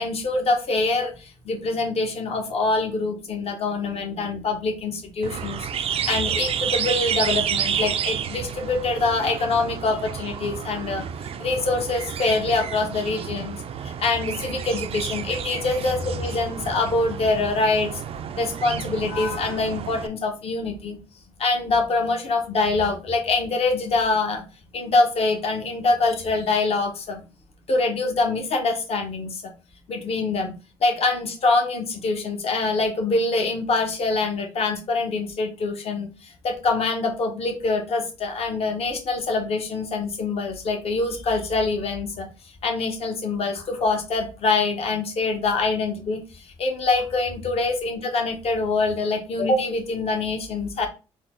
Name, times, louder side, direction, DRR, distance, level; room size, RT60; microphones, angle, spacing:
voice 1, 0.0-18.0 18.4-21.0 21.4-24.4 24.7-27.2 27.7-29.5 29.9-30.5 30.8-42.3 42.6-50.9, left 3 dB, 55° left, 4 dB, 1.0 m, -25 dB
sound 1, 5.2-20.1, right 8 dB, 50° right, 0.4 m, -30 dB
3.9 x 2.0 x 3.6 m, 0.31 s
supercardioid pair, 65°, 13 cm